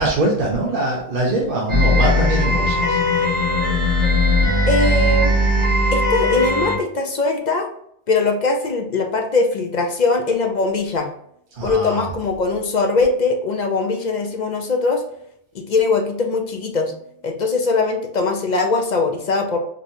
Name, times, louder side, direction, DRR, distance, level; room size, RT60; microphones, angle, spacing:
voice 1, 0.0-3.0 11.5-12.1, right 2 dB, 50° right, -3 dB, 1.0 m, -22 dB
sound 1, 1.7-6.8, left 1 dB, 75° right, 2.1 m, -18 dB
voice 2, 4.7-5.3 5.9-7.7 8.1-11.1 11.6-15.0 15.5-16.9 17.2-19.6, left 3 dB, 50° left, 3 dB, 0.6 m, -21 dB
5.3 x 2.8 x 2.6 m, 0.72 s
omnidirectional pair, 1.2 m